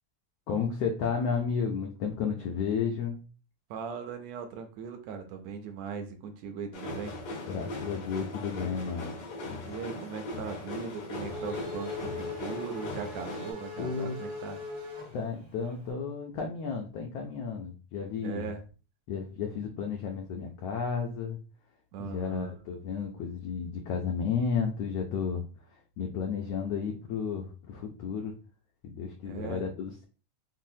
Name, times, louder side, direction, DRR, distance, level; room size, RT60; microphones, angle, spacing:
voice 1, 0.5-3.2 7.5-9.1 13.8-14.1 15.1-18.5 19.1-21.4 22.0-25.5 26.0-28.3 28.8-30.0, left 6 dB, 90° left, 2 dB, 1.4 m, -32 dB
voice 2, 3.7-7.2 9.6-14.6 18.2-18.6 21.9-22.5 29.2-29.7, right 6 dB, 80° right, 5 dB, 1.7 m, -39 dB
sound 1, 6.7-13.5, left 2 dB, 65° left, 2.4 m, -39 dB
Race car auto racing / Accelerating revving vroom, 10.5-15.8, left 3 dB, 45° right, 0.8 m, -40 dB
5.6 x 2.0 x 2.6 m, 0.36 s
omnidirectional pair, 3.4 m